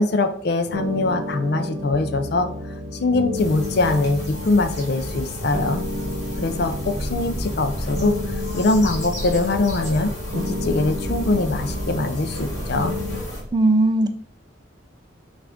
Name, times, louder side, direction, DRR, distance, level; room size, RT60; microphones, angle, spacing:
voice 1, 0.0-2.5 2.9-5.8 6.4-12.9, left 2 dB, 55° left, 8 dB, 0.4 m, -22 dB
sound 1, 0.6-13.2, left 1 dB, 90° right, 0.8 m, -31 dB
sound 2, 3.3-13.4, equal, 35° left, 1.6 m, -33 dB
sound 3, 5.4-13.5, equal, 5° right, 0.8 m, -35 dB
voice 2, 13.5-14.1, right 2 dB, 20° right, 7 dB, 0.3 m, -17 dB
5.8 x 2.5 x 3.6 m, 0.64 s
head